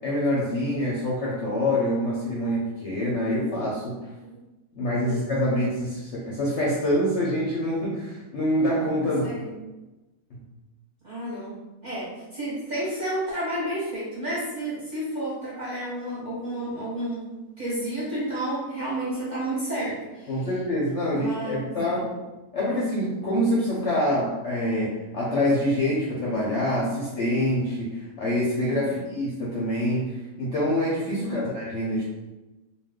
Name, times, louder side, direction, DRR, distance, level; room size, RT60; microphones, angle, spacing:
voice 1, 0.0-4.0 4.8-9.4 10.3-10.4 20.3-22.1 22.5-32.0, left 1 dB, 65° left, -6 dB, 0.7 m, -26 dB
voice 2, 11.0-11.6 11.8-17.3 17.6-20.5 21.1-22.0 28.8-29.0 31.2-31.5, right 1 dB, 35° right, -9 dB, 0.8 m, -31 dB
2.5 x 2.2 x 3.5 m, 1.1 s
omnidirectional pair, 1.7 m